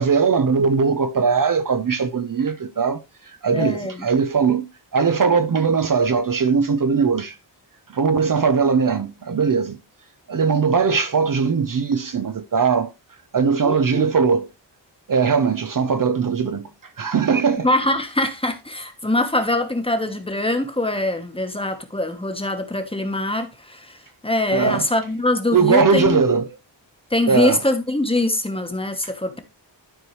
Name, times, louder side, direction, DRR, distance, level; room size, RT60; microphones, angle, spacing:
voice 1, 0.0-7.4 7.9-9.8 10.3-12.9 13.3-14.5 15.1-16.7 17.0-17.7 24.5-24.8 25.5-26.5 27.3-27.6, right 5 dB, 50° right, 0.7 m, -20 dB
voice 2, 3.5-4.1 13.6-14.1 17.6-26.2 27.1-29.4, left 1 dB, 10° left, 1.2 m, -23 dB
12.5 x 4.6 x 3.1 m
wide cardioid pair, 130°, 44 cm